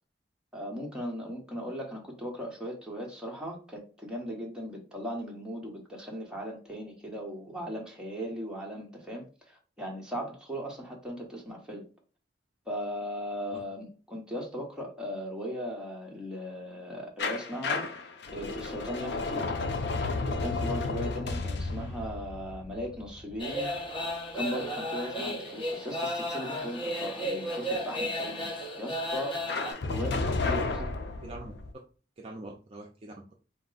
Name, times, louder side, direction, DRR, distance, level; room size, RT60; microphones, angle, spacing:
voice 1, 0.5-11.9 12.7-17.9 18.3-19.5 20.2-23.7 24.3-29.4 29.8-30.7, equal, 5° right, 1.0 m, -38 dB
sound 1, 17.2-24.0 29.5-31.7, left 3 dB, 65° left, 0.5 m, -32 dB
sound 2, 23.4-29.7, equal, 25° left, 1.2 m, -33 dB
voice 2, 30.3-30.9 31.2-31.5 32.2-33.3, right 2 dB, 35° right, 0.5 m, -42 dB
4.1 x 2.2 x 3.8 m
head